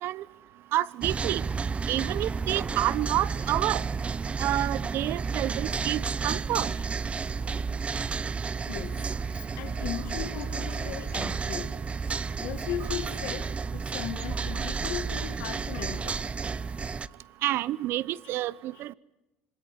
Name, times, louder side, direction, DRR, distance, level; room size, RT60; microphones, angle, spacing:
voice 1, 0.7-1.4 1.9-3.8 4.4-6.7 17.4-18.9, right 14 dB, 60° right, 0.9 m, -29 dB
sound 1, 1.0-17.1, right 5 dB, 30° right, 1.0 m, -31 dB
voice 2, 8.7-9.1 9.6-11.7 12.4-16.2 18.2-18.3 18.7-18.8, left 12 dB, 70° left, 2.4 m, -37 dB
26.0 x 26.0 x 8.2 m
hypercardioid pair, 75°, 4 cm